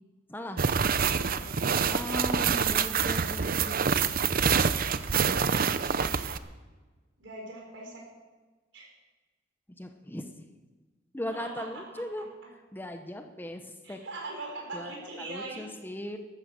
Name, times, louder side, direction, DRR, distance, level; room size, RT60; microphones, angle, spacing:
voice 1, 0.3-0.6 1.9-3.8 5.1-5.5 6.0-6.2 9.8-10.3 11.1-14.0 14.7-16.2, left 1 dB, 10° left, 6 dB, 0.9 m, -38 dB
sound 1, 0.6-6.4, right 6 dB, 50° right, 0.7 m, -26 dB
voice 2, 1.3-1.6 7.2-8.0 8.7-8.9 11.3-11.7 13.8-15.7, right 2 dB, 70° right, 0 dB, 5.5 m, -40 dB
13.5 x 12.5 x 6.5 m, 1.3 s
head